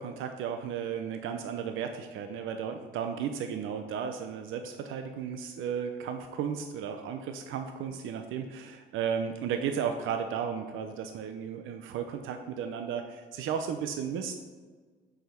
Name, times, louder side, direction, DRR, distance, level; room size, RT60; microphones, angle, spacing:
voice 1, 0.0-14.4, right 7 dB, 85° right, 6 dB, 0.6 m, -34 dB
6.3 x 4.9 x 5.7 m, 1.4 s
cardioid pair, 90°, 20 cm